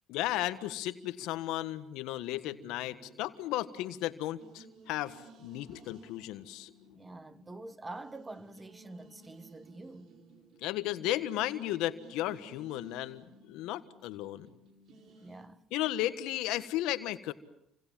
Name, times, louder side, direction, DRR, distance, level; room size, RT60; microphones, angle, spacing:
voice 1, 0.1-6.7 10.6-14.5 15.7-17.3, left 14 dB, 75° left, 1.5 m, -34 dB
sound 1, 2.4-15.5, right 2 dB, 60° right, 4.9 m, -57 dB
voice 2, 7.0-10.2 15.2-15.6, right 2 dB, 20° right, 1.6 m, -46 dB
29.5 x 25.5 x 7.4 m
supercardioid pair, 70°, 0 cm